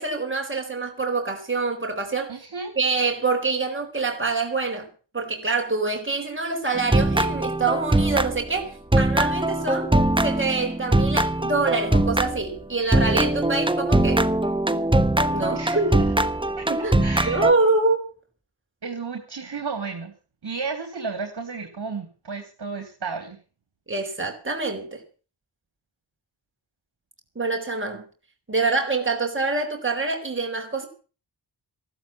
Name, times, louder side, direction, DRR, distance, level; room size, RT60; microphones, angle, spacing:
voice 1, 0.0-2.3 2.8-9.9 10.2-14.3 15.3-16.0 16.7-18.1 23.9-25.0 27.4-28.1 28.5-30.9, right 3 dB, 25° right, 4.1 m, -25 dB
voice 2, 2.3-2.7 15.5-16.1 16.4-16.7 17.0-17.5 18.8-20.1 20.4-23.4, right 4 dB, 60° right, 3.2 m, -33 dB
sound 1, 6.7-8.6 8.9-12.5 12.9-17.5, right 1 dB, 10° right, 1.2 m, -22 dB
14.5 x 12.0 x 7.0 m
wide cardioid pair, 60°, 45 cm